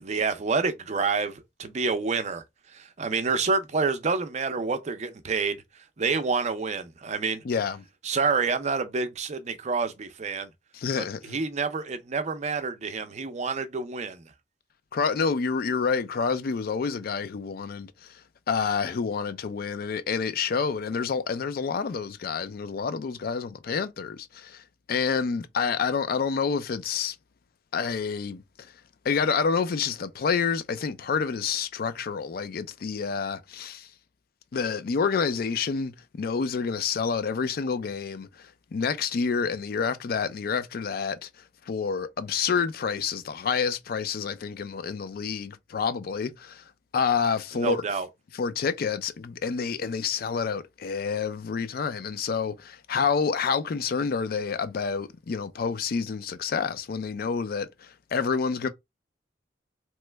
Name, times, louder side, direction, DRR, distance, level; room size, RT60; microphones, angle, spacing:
voice 1, 0.0-2.4 2.7-5.6 6.0-7.4 8.0-10.5 11.0-14.2 47.5-48.1, right 4 dB, 40° right, 0.5 m, -28 dB
voice 2, 7.4-7.8 10.7-11.4 14.9-18.2 18.5-27.2 27.7-28.7 29.0-33.9 34.5-41.3 41.7-46.6 46.9-47.8 48.3-58.7, left 5 dB, 55° left, 0.4 m, -28 dB
3.0 x 2.2 x 3.3 m
head